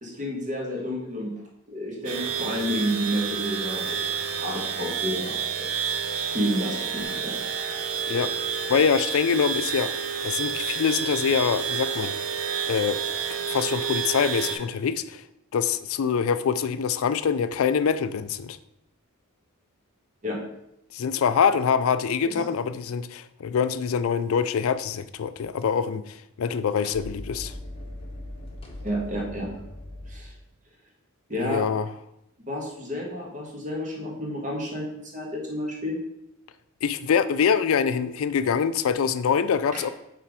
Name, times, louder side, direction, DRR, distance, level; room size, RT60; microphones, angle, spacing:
voice 1, 0.0-1.4 1.7-5.7 6.2-7.4 8.1-8.2 20.2-20.4 22.2-22.5 28.8-29.5 30.1-30.3 31.3-31.7 32.4-36.0 39.7-39.8, equal, 35° right, -1 dB, 1.5 m, -30 dB
sound 1, 2.0-14.5, right 7 dB, 80° right, 1.1 m, -29 dB
voice 2, 8.7-12.1 12.7-13.0 13.5-15.2 15.5-18.6 20.9-27.5 31.4-31.9 36.8-39.9, left 6 dB, 70° left, 13 dB, 0.4 m, -24 dB
sound 2, 25.6-25.7 26.8-30.5, left 1 dB, 25° left, 0.9 m, -40 dB
5.8 x 3.8 x 4.8 m, 0.82 s
head